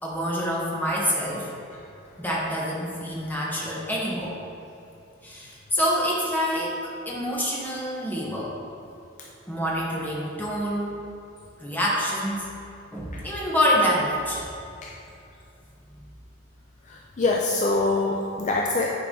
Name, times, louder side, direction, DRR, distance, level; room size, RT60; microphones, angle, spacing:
voice 1, 0.0-1.5 2.2-4.4 5.2-8.5 9.5-10.9 11.6-12.5 12.9-14.4, equal, 10° left, -5 dB, 1.3 m, -26 dB
voice 2, 16.9-18.9, left 2 dB, 35° left, -1 dB, 0.5 m, -24 dB
9.9 x 4.7 x 3.9 m, 2.7 s
head